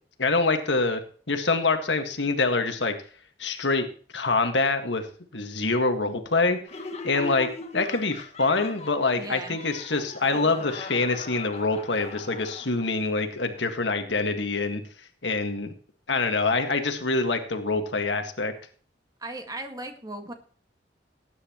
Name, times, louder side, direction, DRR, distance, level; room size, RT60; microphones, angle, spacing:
voice 1, 0.2-1.0 1.3-2.9 3.4-3.9 4.1-5.1 5.3-6.6 7.0-7.5 7.7-14.8 15.2-15.7 16.1-18.5, left 3 dB, 80° left, 6 dB, 1.8 m, -25 dB
Laughter, 6.7-13.0, left 3 dB, 40° left, 1.7 m, -39 dB
voice 2, 9.1-9.6 19.2-20.3, right 2 dB, 20° right, 5 dB, 1.8 m, -37 dB
19.0 x 9.6 x 3.0 m, 0.43 s
head